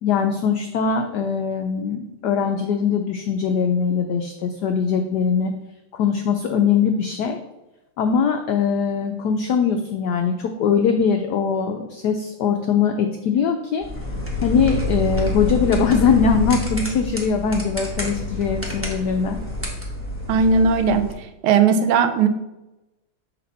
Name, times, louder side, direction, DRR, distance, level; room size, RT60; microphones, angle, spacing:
voice 1, 0.0-5.5 5.9-7.4 8.0-13.9 14.4-19.4, left 6 dB, 85° left, 5 dB, 0.9 m, -21 dB
sound 1, 13.8-21.1, left 2 dB, 10° right, 0.8 m, -27 dB
voice 2, 20.3-21.0 21.4-22.3, right 5 dB, 80° right, 8 dB, 1.5 m, -17 dB
6.8 x 5.1 x 4.2 m, 0.97 s
omnidirectional pair, 2.4 m